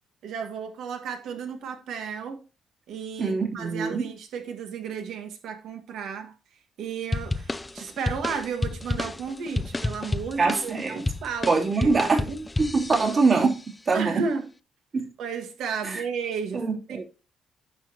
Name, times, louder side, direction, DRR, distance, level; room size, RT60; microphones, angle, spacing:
voice 1, 0.2-2.4 2.9-6.3 6.8-12.4 13.9-14.5 15.2-17.0, right 6 dB, 80° right, 1.7 m, -33 dB
voice 2, 3.2-4.0 10.4-11.0 11.5-12.3 12.6-13.6 13.9-14.2 14.9-15.1 15.8-16.0 16.5-17.0, right 4 dB, 45° right, 3.1 m, -23 dB
sound 1, 7.1-13.5, left 2 dB, 15° left, 0.5 m, -31 dB
10.5 x 6.8 x 3.0 m
cardioid pair, 90°, 0 cm